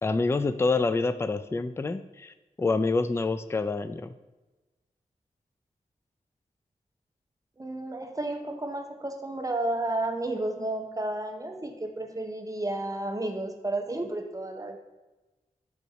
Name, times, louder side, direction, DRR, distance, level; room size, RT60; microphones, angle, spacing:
voice 1, 0.0-4.1, left 3 dB, 15° left, 11 dB, 0.3 m, -27 dB
voice 2, 7.6-14.8, right 2 dB, 25° right, 4 dB, 0.7 m, -32 dB
6.9 x 4.7 x 4.0 m, 1.1 s
wide cardioid pair, 65°, 15 cm